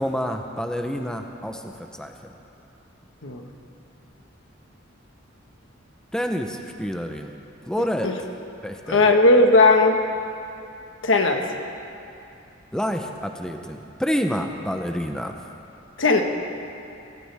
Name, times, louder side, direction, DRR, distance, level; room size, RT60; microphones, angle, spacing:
voice 1, 0.0-2.1 6.1-7.3 7.7-8.1 8.6-9.1 12.7-15.4, equal, 5° left, 4 dB, 0.7 m, -28 dB
voice 2, 8.9-10.0 11.0-11.4 16.0-16.2, left 2 dB, 70° left, 3 dB, 1.4 m, -17 dB
22.5 x 16.5 x 3.5 m, 2.7 s
head